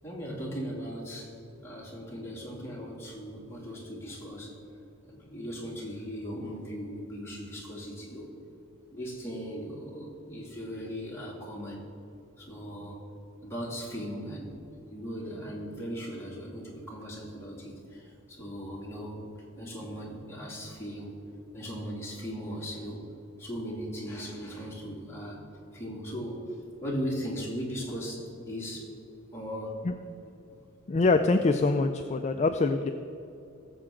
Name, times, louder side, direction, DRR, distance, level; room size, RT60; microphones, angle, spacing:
voice 1, 0.0-1.3 1.6-4.6 5.1-8.3 8.9-11.8 12.4-13.0 13.4-14.6 14.9-19.2 19.6-21.1 21.5-23.1 23.4-25.4 25.7-26.5 26.8-28.9 29.3-29.8, equal, 15° left, -5 dB, 2.7 m, -38 dB
voice 2, 30.9-32.9, left 3 dB, 35° left, 7 dB, 0.4 m, -24 dB
19.0 x 7.5 x 3.8 m, 2.8 s
head